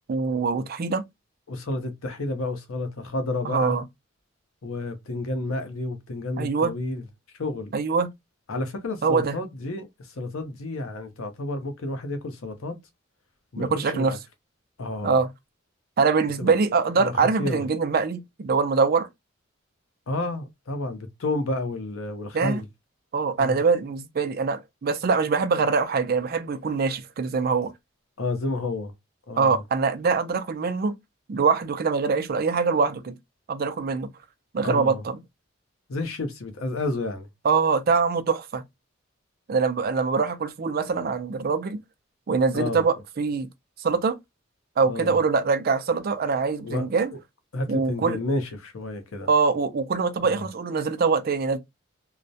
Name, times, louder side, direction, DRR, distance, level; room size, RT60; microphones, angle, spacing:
voice 1, 0.1-1.0 3.4-3.8 6.4-6.7 7.7-8.1 9.0-9.4 13.6-14.1 15.0-15.3 16.0-19.1 22.3-22.6 23.1-27.7 29.4-30.9 31.3-33.1 33.5-34.1 34.5-35.2 37.4-38.6 39.5-41.8 42.3-43.5 43.8-44.2 44.8-47.1 47.7-48.2 49.3-51.6, right 5 dB, 45° right, 0.4 m, -23 dB
voice 2, 1.5-3.8 4.6-7.0 7.4-7.7 8.5-12.8 13.5-14.2 14.8-15.2 16.4-16.6 17.0-17.6 20.1-22.7 23.4-23.6 28.2-28.9 29.3-29.6 34.6-35.0 35.9-37.3 42.5-42.9 44.9-45.2 46.6-46.9 47.5-49.3 50.2-50.4, left 2 dB, 90° left, 0.7 m, -30 dB
2.3 x 2.0 x 2.6 m
head